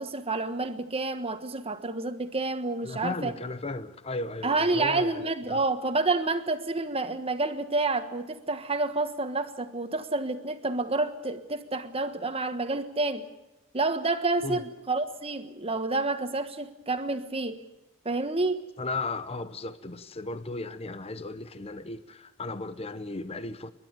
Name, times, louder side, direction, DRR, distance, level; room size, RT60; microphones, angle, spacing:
voice 1, 0.0-3.3 4.4-13.3 13.7-17.6 18.0-18.6, right 3 dB, 30° right, 1.4 m, -29 dB
voice 2, 2.8-5.6 14.4-14.6 18.8-23.7, left 2 dB, 30° left, 0.8 m, -35 dB
29.5 x 12.0 x 9.0 m
head